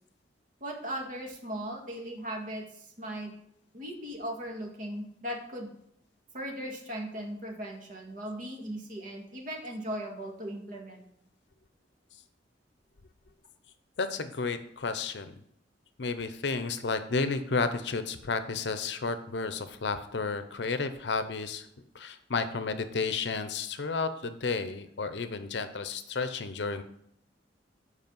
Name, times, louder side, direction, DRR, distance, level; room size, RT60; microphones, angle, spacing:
voice 1, 0.6-3.3 3.7-5.7 6.3-11.0, equal, 45° right, 1 dB, 1.7 m, -38 dB
voice 2, 14.0-15.3 16.0-21.7 21.9-26.8, left 4 dB, 70° left, 10 dB, 0.7 m, -32 dB
8.2 x 4.8 x 5.4 m, 0.73 s
head